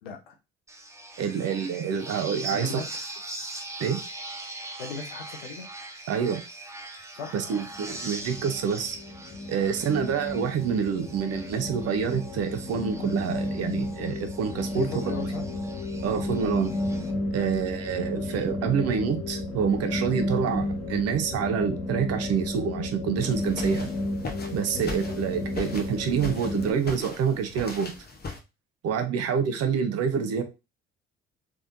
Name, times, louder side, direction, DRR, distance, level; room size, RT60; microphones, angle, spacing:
voice 1, 0.0-0.3 2.5-3.0 4.8-5.7 7.1-8.0 9.6-9.7 11.5-11.6 14.7-15.5 16.0-16.2 17.4-17.5 24.7-25.0 29.1-29.2, left 5 dB, 85° left, 2 dB, 0.9 m, -39 dB
sound 1, 0.7-17.1, right 2 dB, 10° right, 0.9 m, -42 dB
voice 2, 1.2-2.8 3.8-4.0 6.1-6.4 7.3-9.0 9.5-15.0 16.0-16.7 17.3-23.9 24.5-27.9 28.8-30.4, right 7 dB, 55° right, 8 dB, 0.9 m, -27 dB
sound 2, 7.7-26.7, left 2 dB, 55° left, 1.5 m, -32 dB
sound 3, 23.2-28.4, left 3 dB, 35° left, 1.1 m, -39 dB
3.6 x 3.5 x 2.6 m, 0.27 s
hypercardioid pair, 50°, 30 cm